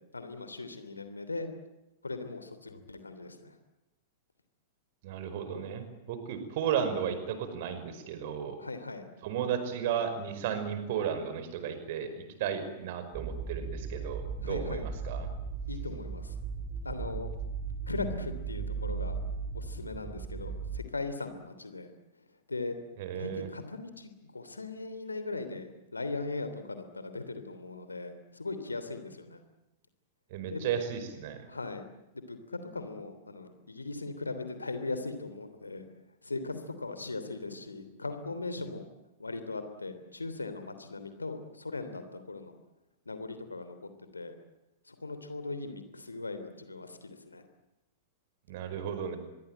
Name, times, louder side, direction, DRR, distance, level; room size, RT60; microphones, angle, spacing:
voice 1, 0.1-1.5 2.0-3.5 8.6-9.1 14.4-14.9 15.7-16.3 16.8-17.3 17.9-19.2 19.5-21.9 22.5-22.8 23.1-29.4 30.4-30.6 31.5-31.8 32.1-35.9 36.2-38.8 39.2-42.6 43.0-43.7 44.1-44.3 44.9-47.4, left 3 dB, 80° left, 10 dB, 3.1 m, -39 dB
voice 2, 5.0-8.6 9.2-12.1 12.4-15.3 23.0-23.5 30.3-31.4 48.5-49.2, right 8 dB, 50° right, 10 dB, 5.4 m, -34 dB
sound 1, 13.1-20.8, right 5 dB, 20° right, 2.1 m, -37 dB
25.0 x 23.0 x 9.1 m, 0.98 s
figure-of-eight pair, 95°, 0 cm